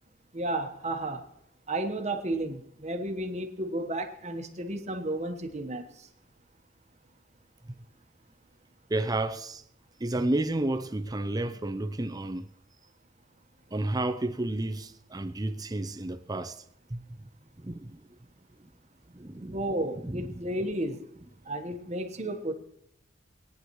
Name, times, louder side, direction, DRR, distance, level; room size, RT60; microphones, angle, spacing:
voice 1, 0.3-1.2 1.7-6.1 19.5-21.0 21.4-22.5, right 1 dB, 35° right, 1.2 m, -32 dB
voice 2, 8.9-9.6 10.0-12.5 13.7-16.6 16.9-17.0 17.6-18.0 18.6-18.7 19.1-19.6 20.0-20.4, right 2 dB, 20° right, 0.6 m, -31 dB
21.0 x 9.6 x 3.1 m
head